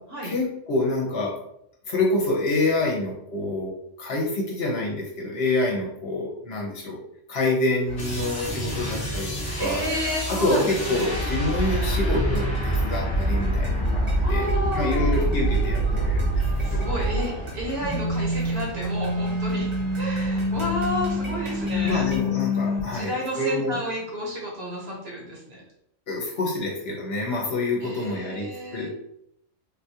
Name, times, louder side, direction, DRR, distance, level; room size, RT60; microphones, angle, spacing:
voice 1, 0.2-1.3 1.9-7.0 7.3-9.3 9.6-9.8 10.3-16.4 16.7-16.9 21.5-23.8 26.1-28.9, left 2 dB, 60° left, -1 dB, 0.9 m, -27 dB
sound 1, 7.8-22.2, equal, 25° right, 0.9 m, -38 dB
sound 2, 8.0-17.5 17.8-22.8, equal, 20° left, 1.0 m, -27 dB
voice 2, 9.6-11.2 14.2-15.3 16.6-22.1 22.9-25.6 27.8-28.9, equal, 55° right, -3 dB, 1.2 m, -31 dB
sound 3, 11.5-18.8, right 2 dB, 5° left, 0.4 m, -30 dB
3.6 x 2.3 x 2.8 m, 0.73 s
omnidirectional pair, 1.3 m